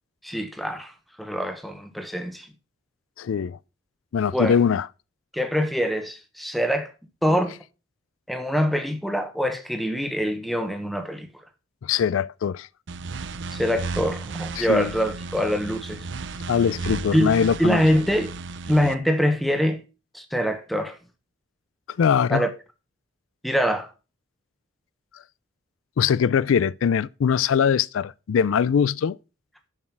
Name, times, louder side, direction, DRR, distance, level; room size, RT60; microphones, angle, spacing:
voice 1, 0.2-0.9 1.2-2.5 4.3-4.6 5.3-6.9 7.2-7.6 8.3-11.3 13.5-16.0 17.1-18.3 18.6-19.8 20.1-21.0 22.3-22.5 23.4-23.9, equal, ahead, 1.0 m, -24 dB
voice 2, 3.2-3.6 4.1-4.9 11.8-12.7 14.6-14.9 16.5-17.8 22.0-22.5 26.0-29.2, left 7 dB, 85° left, 0.4 m, -22 dB
sound 1, 12.9-18.9, right 3 dB, 65° right, 0.5 m, -34 dB
7.3 x 6.5 x 5.8 m
head